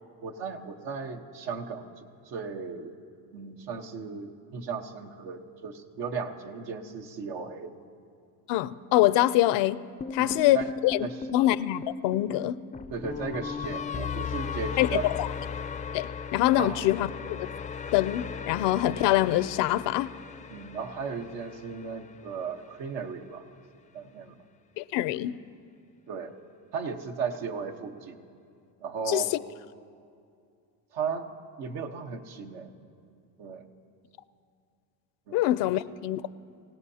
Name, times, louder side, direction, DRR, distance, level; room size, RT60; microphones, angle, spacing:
voice 1, 0.2-2.9 3.3-7.8 10.2-10.7 11.0-11.3 12.9-15.1 16.5-16.9 20.5-23.4 23.9-24.4 25.3-25.4 26.1-26.3 26.7-28.2 28.8-29.3 30.9-32.8 33.4-33.7 35.3-35.4 35.7-35.8, right 5 dB, 85° right, 3 dB, 1.2 m, -36 dB
voice 2, 8.5-9.8 10.1-10.6 10.8-11.0 11.3-12.6 14.8-15.3 15.9-17.4 17.9-20.1 24.8-25.3 29.1-29.4 35.3-36.2, left 15 dB, 80° left, 17 dB, 0.6 m, -24 dB
sound 1, 10.0-22.2, left 6 dB, 20° left, 0.3 m, -37 dB
25.0 x 17.0 x 2.8 m, 2.4 s
supercardioid pair, 85°, 43 cm